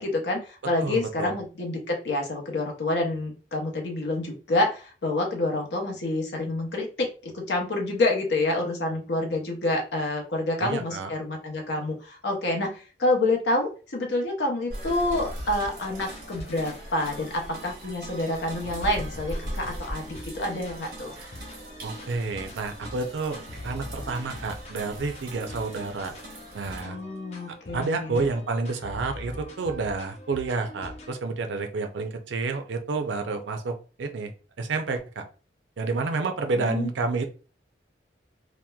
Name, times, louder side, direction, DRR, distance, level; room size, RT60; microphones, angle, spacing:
voice 1, 0.0-21.1 26.8-28.3 36.5-36.9, left 2 dB, 75° left, 1 dB, 0.7 m, -28 dB
voice 2, 0.8-1.3 10.6-11.1 21.8-23.4 23.6-26.1 26.5-27.0 27.7-34.3 34.6-35.2 35.8-37.3, right 3 dB, 85° right, 6 dB, 0.5 m, -29 dB
sound 1, 14.7-26.8, equal, 55° right, 1.1 m, -40 dB
sound 2, 15.8-18.1 18.7-31.1, left 1 dB, 35° left, 0.4 m, -43 dB
2.9 x 2.1 x 2.2 m, 0.35 s
head